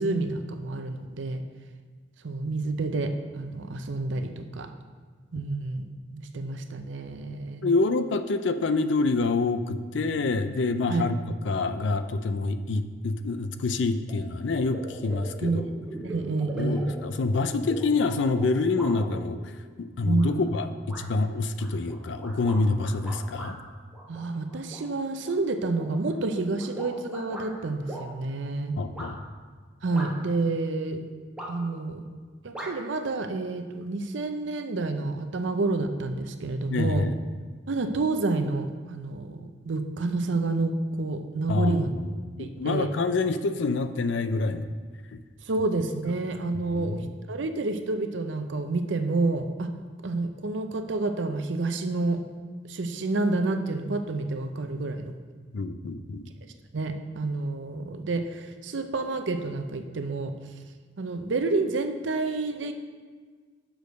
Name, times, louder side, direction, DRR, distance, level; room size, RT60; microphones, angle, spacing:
voice 1, 0.0-1.4 2.2-4.7 5.3-5.8 6.1-7.7 10.9-11.0 15.4-15.7 16.0-16.9 20.0-20.4 24.1-28.7 29.8-31.0 31.5-32.0 32.4-37.1 37.7-41.9 42.4-42.9 45.5-47.0 47.3-49.7 50.0-52.2 52.7-55.1 56.7-60.3 61.0-62.7, right 3 dB, 75° right, 7 dB, 0.6 m, -29 dB
voice 2, 7.6-11.2 11.4-15.6 16.6-19.4 19.8-23.6 28.8-29.2 36.7-37.2 41.5-42.1 42.4-44.7 45.1-45.2 46.7-47.0 55.5-56.3, left 3 dB, 75° left, 10 dB, 0.5 m, -27 dB
sound 1, 14.1-14.2 14.5-19.6 20.1-20.6 20.9-21.0 21.6-23.5 23.9-24.8 25.2-27.5 27.9-28.0 28.9-29.1 29.9-30.4 31.4-31.8 32.5-32.7, right 1 dB, 5° right, 1.4 m, -40 dB
6.3 x 5.2 x 6.4 m, 1.5 s
head